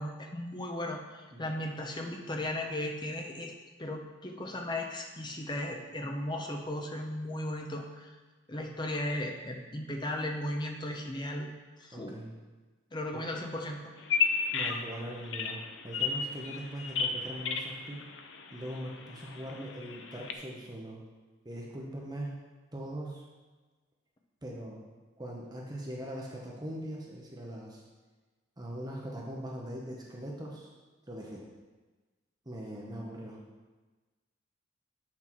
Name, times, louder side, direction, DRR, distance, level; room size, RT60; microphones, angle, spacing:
voice 1, 0.0-3.5 3.8-8.1 8.5-11.5 11.8-12.1 12.9-13.8, left 1 dB, 20° left, 2 dB, 0.8 m, -36 dB
voice 2, 11.9-12.3 13.1-13.2 14.5-18.0 18.5-21.0 21.4-22.3 22.7-23.2 24.4-24.8 25.2-27.8 28.6-30.7 31.1-31.4 32.4-33.4, right 1 dB, 20° right, -2 dB, 0.9 m, -41 dB
Bird vocalization bird call bird song, 14.0-20.3, left 6 dB, 65° left, 0.6 m, -34 dB
7.9 x 6.0 x 4.5 m, 1.3 s
head